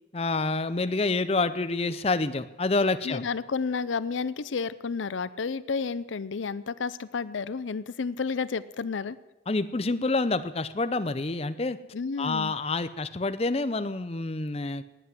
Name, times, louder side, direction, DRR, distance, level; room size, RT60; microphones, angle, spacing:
voice 1, 0.1-3.2 9.5-11.8 12.2-14.8, left 3 dB, 30° left, 12 dB, 0.6 m, -27 dB
voice 2, 3.0-9.2 11.9-12.5, left 5 dB, 85° left, 17 dB, 0.6 m, -31 dB
19.5 x 8.2 x 7.7 m, 0.99 s
head